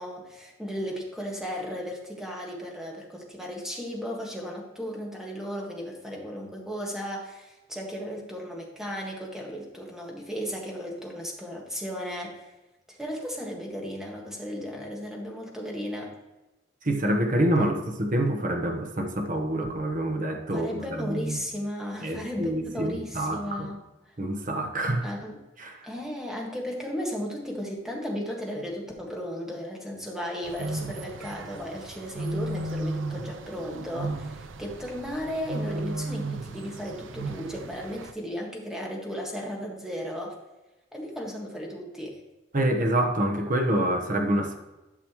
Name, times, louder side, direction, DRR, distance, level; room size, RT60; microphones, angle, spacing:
voice 1, 0.0-12.4 12.9-16.1 17.6-17.8 20.5-23.8 24.1-24.2 25.0-25.4 25.8-40.4 40.9-42.2, equal, 5° right, -2 dB, 1.7 m, -35 dB
voice 2, 16.8-21.4 22.0-23.7 24.2-25.1 25.6-25.9 42.5-44.6, right 1 dB, 45° right, 4 dB, 1.0 m, -27 dB
sound 1, 30.4-38.1, right 2 dB, 75° right, 0.5 m, -35 dB
12.0 x 6.0 x 3.1 m, 1.1 s
head